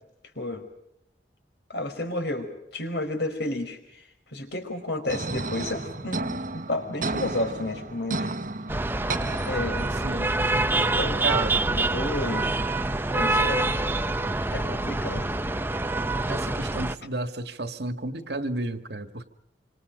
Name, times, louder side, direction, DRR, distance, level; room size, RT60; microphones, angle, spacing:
voice 1, 1.7-3.8 4.3-8.3 9.5-9.9 11.0-11.4 11.7-12.6 13.1-13.9 14.5-15.3, left 1 dB, 65° left, 5.0 m, -31 dB
sound 1, 5.1-10.1, right 3 dB, 50° right, 1.3 m, -33 dB
sound 2, 8.7-17.0, right 2 dB, 10° right, 0.8 m, -26 dB
voice 2, 9.9-10.4 11.2-11.6 16.3-19.3, right 2 dB, 65° right, 1.9 m, -32 dB
26.5 x 26.5 x 5.2 m
head